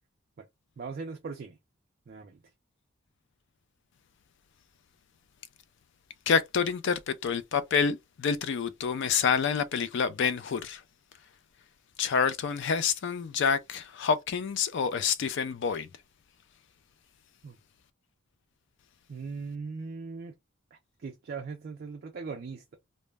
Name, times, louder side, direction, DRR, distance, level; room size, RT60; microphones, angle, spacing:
voice 1, 0.8-1.6 2.1-2.4 17.4-17.6 19.1-20.3 21.0-22.8, right 4 dB, 45° right, 0.3 m, -39 dB
voice 2, 6.3-10.8 12.0-15.9, left 6 dB, 60° left, 0.3 m, -28 dB
2.1 x 2.0 x 3.3 m
head